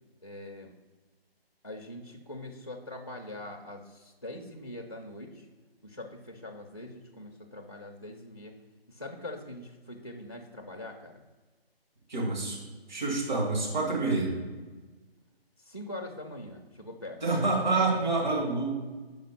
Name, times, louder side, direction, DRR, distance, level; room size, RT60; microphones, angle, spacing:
voice 1, 0.2-0.8 1.6-5.5 5.8-8.6 8.9-11.2 15.6-17.2 17.6-17.7, left 1 dB, 25° left, 1 dB, 0.4 m, -43 dB
voice 2, 12.1-12.6 12.9-14.3 17.2-18.9, right 3 dB, 50° right, -2 dB, 2.0 m, -27 dB
5.3 x 5.0 x 5.6 m, 1.3 s
figure-of-eight pair, 150°, 30 cm